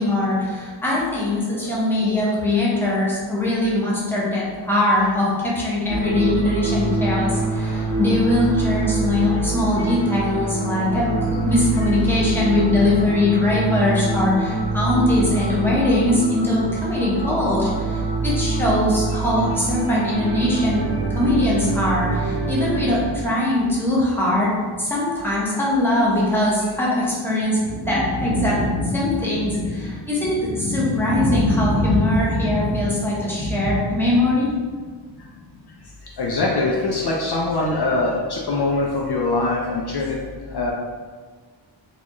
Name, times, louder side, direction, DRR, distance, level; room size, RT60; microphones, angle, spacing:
voice 1, 0.0-24.5 24.8-34.5, left 1 dB, 5° left, -7 dB, 0.9 m, -21 dB
sound 1, 5.9-23.0, right 3 dB, 55° right, 0.9 m, -25 dB
voice 2, 36.2-40.2 40.5-40.7, left 2 dB, 55° left, -2 dB, 0.5 m, -22 dB
4.1 x 2.4 x 3.0 m, 1.5 s
wide cardioid pair, 115°, 47 cm